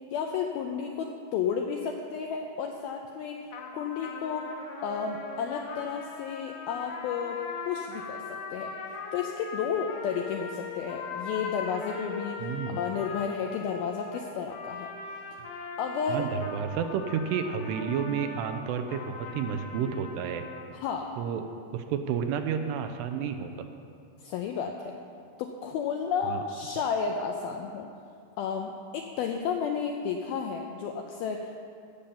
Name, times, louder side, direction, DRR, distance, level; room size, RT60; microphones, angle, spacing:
voice 1, 0.1-3.5 3.7-4.4 4.8-7.4 7.7-8.2 8.5-8.7 9.1-14.9 15.8-16.3 20.7-21.1 24.2-25.0 25.4-27.9 28.4-31.6, left 6 dB, 85° left, 3 dB, 2.1 m, -32 dB
sound 1, 3.5-20.7, left 4 dB, 65° left, 2.6 m, -40 dB
voice 2, 12.4-12.8 16.1-20.4 21.2-21.4 21.7-23.7 26.2-26.4, right 7 dB, 80° right, 7 dB, 2.6 m, -31 dB
15.5 x 7.2 x 6.9 m, 2.4 s
omnidirectional pair, 5.1 m